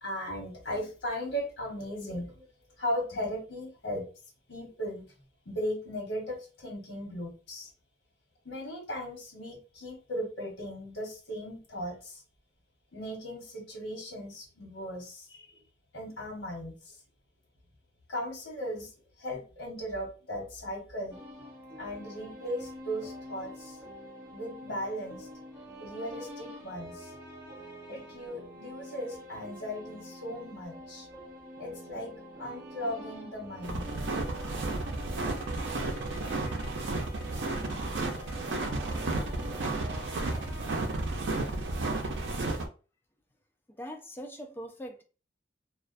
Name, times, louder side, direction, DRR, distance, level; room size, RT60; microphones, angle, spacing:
voice 1, 0.0-2.5 2.8-4.1 4.5-5.1 5.4-7.7 8.4-12.2 12.9-15.6 15.9-16.9 18.1-18.9 19.2-21.2 21.8-23.8 24.3-25.3 25.8-27.1 27.9-31.1 31.6-32.1 32.4-33.9 34.2-34.3, equal, 85° left, 1.1 m, -37 dB
sound 1, 21.1-40.8, equal, 15° right, 0.8 m, -46 dB
sound 2, 33.6-42.6, right 2 dB, 85° right, 0.5 m, -32 dB
voice 2, 43.7-45.0, equal, 10° left, 0.4 m, -42 dB
2.3 x 2.1 x 2.5 m
head